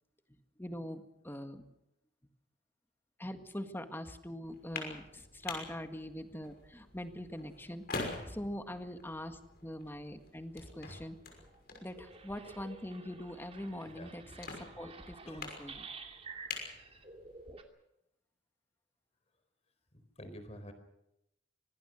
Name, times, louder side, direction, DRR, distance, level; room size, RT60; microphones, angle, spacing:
voice 1, 0.6-1.7 3.2-7.8 8.3-11.2 11.8-14.5 14.8-15.9, left 1 dB, 10° left, 7 dB, 1.8 m, -43 dB
sound 1, 4.4-17.5, left 3 dB, 60° left, 6.0 m, -47 dB
sound 2, 10.1-10.2 10.6-11.1 11.3-17.6, right 4 dB, 35° right, 2.5 m, -51 dB
voice 2, 13.8-14.1 15.2-15.5 19.9-20.7, equal, 35° left, 9 dB, 4.2 m, -50 dB
25.5 x 19.0 x 6.5 m, 0.85 s
head